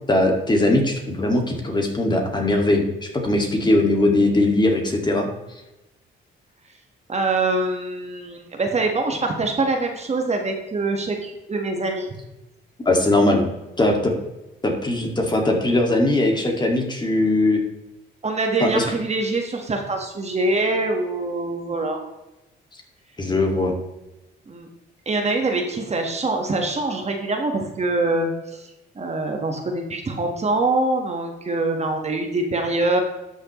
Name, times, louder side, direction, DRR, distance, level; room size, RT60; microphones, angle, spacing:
voice 1, 0.1-5.3 12.9-13.5 13.8-14.1 14.6-17.6 18.6-18.8 23.2-23.7, left 2 dB, 20° left, 2 dB, 2.1 m, -20 dB
voice 2, 7.1-12.2 18.2-22.0 24.5-24.7 25.0-33.0, right 2 dB, 35° right, 3 dB, 1.5 m, -24 dB
12.5 x 6.4 x 3.1 m, 0.99 s
cardioid pair, 90°, 20 cm